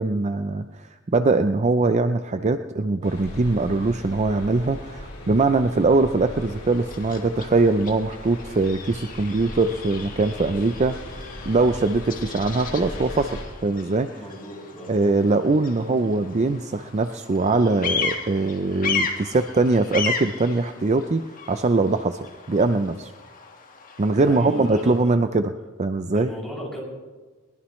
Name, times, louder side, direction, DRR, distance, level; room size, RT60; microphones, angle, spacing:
voice 1, 0.0-13.3 13.6-14.1 14.9-22.2 22.5-23.1 24.0-25.5 25.8-26.3, right 3 dB, 30° right, 9 dB, 0.5 m, -22 dB
sound 1, 3.0-13.4, left 1 dB, 75° left, 5.9 m, -38 dB
Bird vocalization bird call bird song, 6.3-25.0, left 5 dB, 40° left, 1.7 m, -35 dB
voice 2, 14.1-14.9 24.1-25.2 26.1-26.8, equal, ahead, -5 dB, 6.5 m, -35 dB
22.5 x 20.0 x 3.2 m, 1.3 s
head